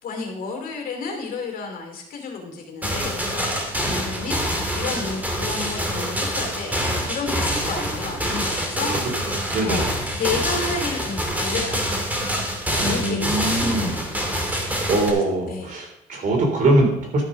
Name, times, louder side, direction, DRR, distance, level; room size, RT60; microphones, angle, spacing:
voice 1, 0.0-9.2 9.6-9.8 10.1-12.0 12.8-13.9 15.1-15.7, left 4 dB, 60° left, 3 dB, 2.7 m, -31 dB
sound 1, 2.8-15.1, equal, 10° right, 2.3 m, -26 dB
voice 2, 9.5-9.8 12.8-13.9 14.9-17.2, right 2 dB, 50° right, 1 dB, 3.5 m, -22 dB
12.0 x 6.0 x 5.3 m, 0.81 s
cardioid pair, 110°, 17 cm